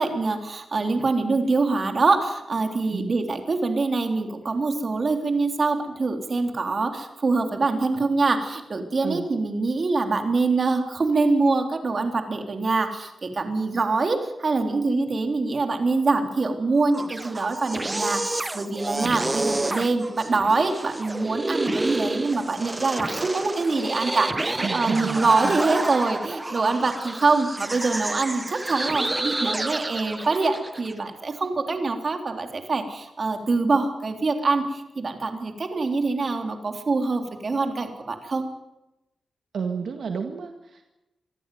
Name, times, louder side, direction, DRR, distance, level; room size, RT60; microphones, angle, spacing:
voice 1, 0.0-38.5, right 3 dB, 45° right, 5 dB, 3.5 m, -24 dB
sound 1, 16.8-30.9, right 2 dB, 20° right, 0.9 m, -29 dB
voice 2, 19.0-19.5 24.6-25.6 39.5-40.8, right 5 dB, 75° right, 5 dB, 1.9 m, -31 dB
25.0 x 15.0 x 9.4 m, 0.93 s
cardioid pair, 75°, 0 cm